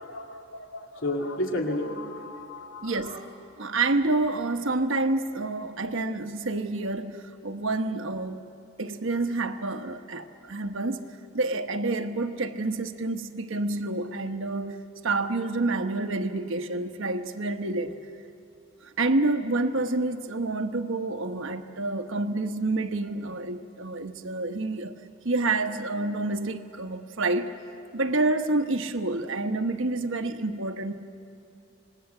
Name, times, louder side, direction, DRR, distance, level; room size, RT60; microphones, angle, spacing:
voice 1, 0.0-3.3, left 1 dB, 70° left, 2 dB, 2.5 m, -33 dB
voice 2, 2.8-3.2 3.6-8.4 8.8-11.1 11.3-14.8 15.0-18.0 18.8-25.0 25.2-27.5 27.9-30.9, right 2 dB, 70° right, 8 dB, 1.1 m, -28 dB
26.0 x 20.0 x 7.9 m, 2.6 s
head